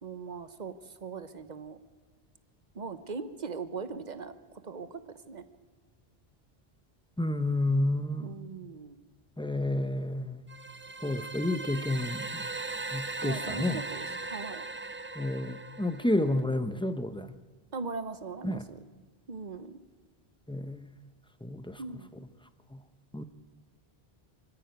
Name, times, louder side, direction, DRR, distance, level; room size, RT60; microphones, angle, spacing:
voice 1, 0.0-1.8 2.7-4.3 4.6-5.4 8.2-9.0 13.2-14.6 17.7-18.8 19.3-19.8 21.8-22.1, right 4 dB, 45° right, 12 dB, 1.1 m, -40 dB
voice 2, 7.2-8.4 9.4-10.5 11.0-12.4 12.9-13.8 15.1-17.4 18.4-18.7 20.5-20.9 21.4-21.8 22.7-22.8 23.1-23.2, left 1 dB, 5° left, 10 dB, 0.8 m, -30 dB
sound 1, 10.5-16.4, right 3 dB, 20° right, 0.4 m, -39 dB
23.5 x 14.5 x 9.2 m, 1.4 s
omnidirectional pair, 1.0 m